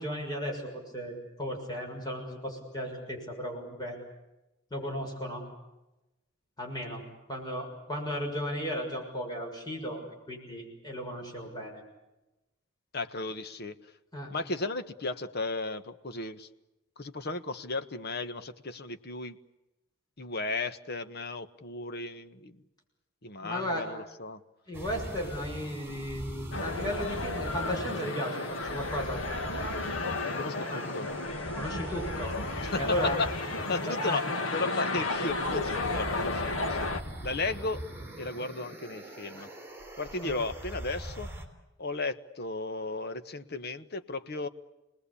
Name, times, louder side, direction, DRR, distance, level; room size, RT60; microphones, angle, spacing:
voice 1, 0.0-4.0 4.7-5.4 6.6-7.0 7.3-10.0 10.3-11.8 14.1-14.4 23.4-23.9 24.7-29.2 30.7-30.8 31.6-32.4 32.7-33.2 33.8-34.2 39.4-39.5 40.2-40.3, equal, 20° left, 0 dB, 6.5 m, -35 dB
voice 2, 12.9-13.8 14.3-16.5 17.0-19.4 20.2-22.6 23.2-24.4 30.4-31.1 32.6-34.2 34.5-36.9 37.2-37.9 38.2-39.5 40.0-41.3 41.8-44.5, left 3 dB, 55° left, 9 dB, 1.4 m, -35 dB
sound 1, 24.7-41.5, right 1 dB, 10° right, 4.8 m, -42 dB
sound 2, 26.5-37.0, left 3 dB, 75° left, 2.0 m, -33 dB
29.5 x 20.0 x 8.6 m, 0.99 s
head